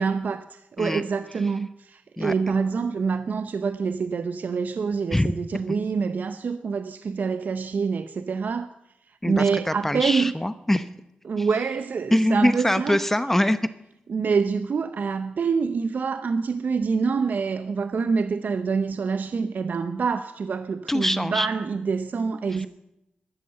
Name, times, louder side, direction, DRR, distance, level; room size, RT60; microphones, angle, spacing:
voice 1, 0.0-8.7 9.1-10.3 11.2-13.1 14.1-22.7, right 5 dB, 65° right, 0.7 m, -26 dB
voice 2, 9.8-10.9 12.1-13.6 20.9-21.5, left 1 dB, 10° left, 0.8 m, -23 dB
13.5 x 12.5 x 7.7 m
wide cardioid pair, 85°, 3 cm